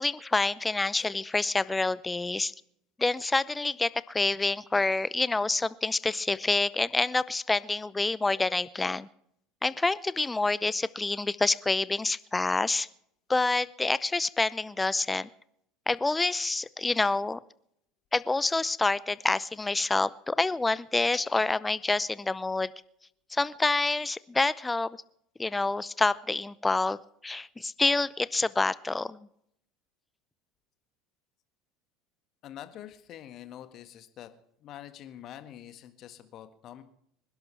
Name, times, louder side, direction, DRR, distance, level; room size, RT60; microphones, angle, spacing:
voice 1, 0.0-2.5 3.0-9.1 9.6-12.9 13.3-15.3 15.9-17.4 18.1-22.7 23.3-25.0 25.4-27.0 27.2-29.2, left 3 dB, 15° left, 18 dB, 0.6 m, -27 dB
voice 2, 32.4-34.3 34.6-36.8, left 11 dB, 50° left, 9 dB, 1.7 m, -45 dB
26.5 x 11.5 x 3.4 m, 0.72 s
hypercardioid pair, 70°, 0 cm